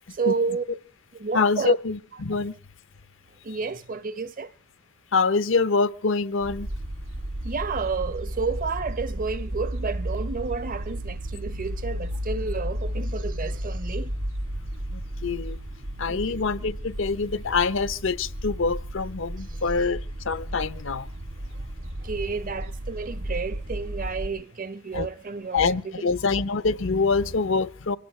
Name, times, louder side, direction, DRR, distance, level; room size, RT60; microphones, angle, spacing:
voice 1, 0.2-0.6 1.1-1.8 3.4-4.5 7.4-14.1 16.1-16.4 22.0-26.1, right 4 dB, 40° right, 0.8 m, -31 dB
voice 2, 1.3-2.5 5.1-6.7 14.9-15.6 16.0-21.1 24.9-25.1 25.5-28.0, left 4 dB, 65° left, 0.7 m, -25 dB
sound 1, 6.4-24.3, right 1 dB, 70° right, 2.3 m, -33 dB
25.0 x 17.0 x 3.2 m
head